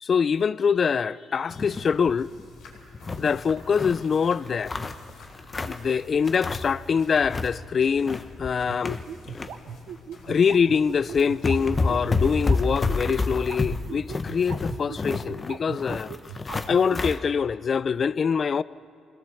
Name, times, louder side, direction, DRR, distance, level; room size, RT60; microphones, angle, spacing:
voice 1, 0.0-2.3 3.2-4.7 5.7-9.0 10.3-16.1 16.7-18.6, left 6 dB, 45° left, 0.4 m, -24 dB
sound 1, 1.5-12.6, left 3 dB, 85° left, 4.3 m, -50 dB
sound 2, 1.5-2.0 2.3-2.4 2.7-4.0 4.4-5.9 6.3-6.9 7.1-7.6 7.9-9.5 9.9-10.0 10.7-10.8 11.1-17.2, left 3 dB, 30° left, 1.0 m, -29 dB
sound 3, 8.7-17.1, right 9 dB, 75° right, 0.8 m, -38 dB
21.5 x 17.5 x 7.0 m
cardioid pair, 90°, 0 cm